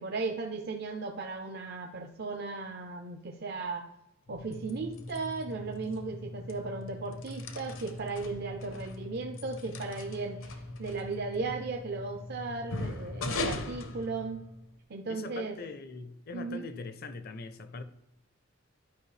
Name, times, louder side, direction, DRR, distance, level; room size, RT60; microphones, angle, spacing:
voice 1, 0.0-3.9 4.3-14.4 14.9-15.6 16.3-16.7, right 3 dB, 50° right, 0.5 m, -36 dB
sound 1, 4.3-14.8, left 2 dB, 80° left, 0.8 m, -40 dB
voice 2, 15.1-17.8, left 3 dB, 50° left, 0.5 m, -42 dB
11.5 x 5.1 x 3.2 m
head